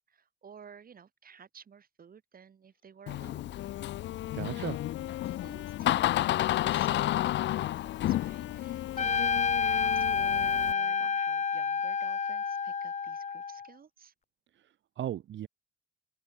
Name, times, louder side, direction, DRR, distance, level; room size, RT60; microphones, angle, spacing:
voice 1, 0.0-3.5 4.1-4.3 4.5-4.7 5.2-14.1, right 7 dB, 45° right, 4.7 m, -54 dB
Door, 3.1-10.7, left 14 dB, 65° left, 0.4 m, -32 dB
Wind instrument woodwind instrument, 3.4-11.1, left 14 dB, 85° left, 3.0 m, -41 dB
voice 2, 4.3-4.8 14.5-15.5, right 11 dB, 70° right, 2.1 m, -37 dB
Trumpet, 9.0-13.7, left 6 dB, 35° left, 1.2 m, -29 dB
cardioid pair, 90°, 20 cm